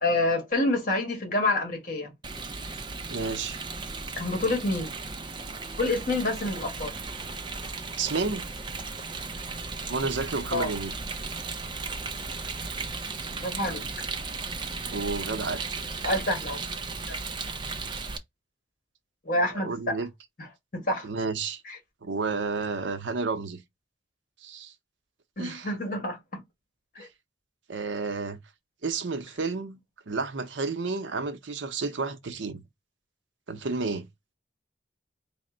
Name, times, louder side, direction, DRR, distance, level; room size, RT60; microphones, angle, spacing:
voice 1, 0.0-2.1 4.2-4.9 5.8-6.9 10.5-10.7 13.3-13.8 16.0-16.6 17.0-17.2 19.2-20.0 20.7-21.1 21.6-21.8 25.4-26.4 26.9-27.1, left 2 dB, 45° left, 1.6 m, -27 dB
Rain, 2.2-18.2, right 4 dB, 25° right, 0.4 m, -36 dB
voice 2, 3.1-3.6 8.0-8.5 9.9-10.9 14.9-15.6 19.5-20.1 21.0-21.6 22.0-23.6 24.4-24.7 25.4-25.7 27.0-27.1 27.7-28.4 28.8-29.8 30.1-32.6 33.5-34.1, right 4 dB, 80° right, 0.6 m, -31 dB
4.2 x 2.1 x 3.8 m
head